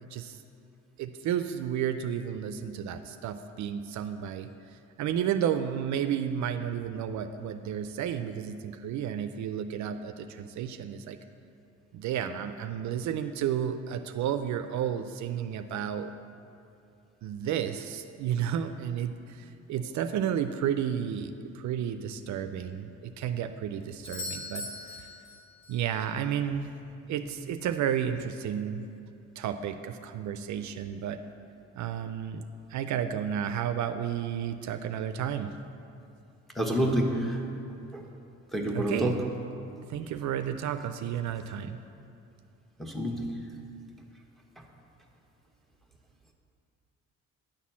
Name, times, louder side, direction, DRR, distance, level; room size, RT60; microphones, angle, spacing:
voice 1, 0.0-0.4 1.0-11.2 11.9-16.1 17.2-25.1 25.7-26.7 27.1-28.8 29.4-31.2 31.8-35.5 38.7-39.1 39.9-41.8, right 9 dB, 70° right, 9 dB, 0.5 m, -32 dB
Doorbell, 24.0-25.9 30.0-30.1, left 3 dB, 85° left, 1.9 m, -40 dB
voice 2, 36.5-37.4 37.9-38.0 38.5-39.1 42.8-43.2, equal, ahead, 0 dB, 1.2 m, -28 dB
10.0 x 4.2 x 7.2 m, 2.7 s
cardioid pair, 90°, 30 cm